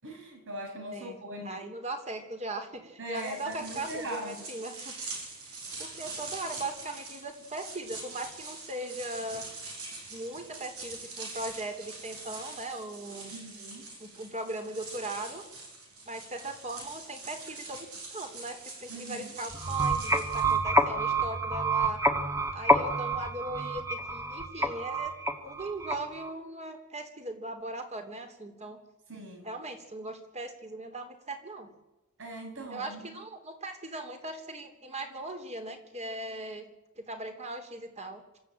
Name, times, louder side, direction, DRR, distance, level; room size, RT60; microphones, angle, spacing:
voice 1, 0.0-1.6 3.0-4.5 13.3-13.9 18.9-19.3 29.1-29.5 32.2-33.2, right 1 dB, 60° right, 4 dB, 6.2 m, -40 dB
voice 2, 0.9-4.9 5.8-9.5 10.1-13.3 14.0-15.4 16.0-22.0 22.5-25.1 25.4-28.8 29.4-31.7 32.7-36.6 37.0-38.2, right 2 dB, 30° right, 6 dB, 3.3 m, -39 dB
sound 1, 3.1-20.6, right 3 dB, 80° right, 7.3 m, -44 dB
sound 2, 19.5-26.3, right 1 dB, 15° right, 1.8 m, -28 dB
26.0 x 14.0 x 8.9 m, 1.0 s
head